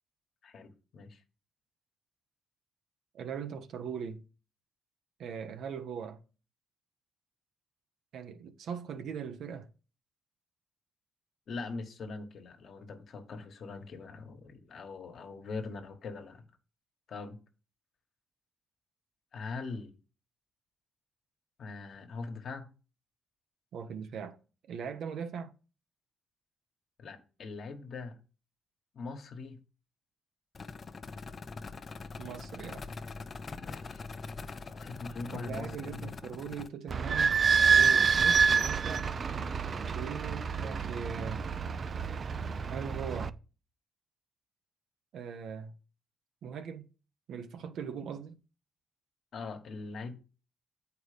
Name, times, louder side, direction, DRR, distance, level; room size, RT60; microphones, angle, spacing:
voice 1, 0.4-1.2 11.5-16.4 17.1-17.4 19.3-19.9 21.6-22.7 27.0-28.2 28.9-29.6 33.6-34.0 34.7-36.1 49.3-50.2, left 4 dB, 65° left, 1.4 m, -42 dB
voice 2, 3.1-4.2 5.2-6.2 8.1-9.7 23.7-24.4 24.6-25.5 32.2-32.8 35.3-37.4 37.7-39.1 39.9-41.5 42.7-43.4 45.1-45.7 46.4-46.8 47.3-48.4, right 7 dB, 80° right, 0.9 m, -40 dB
sound 1, 30.5-36.7, left 4 dB, 40° left, 0.6 m, -43 dB
Idling / Squeak, 36.9-43.3, right 6 dB, 45° right, 0.4 m, -27 dB
8.1 x 4.7 x 5.1 m
cardioid pair, 100°, 0 cm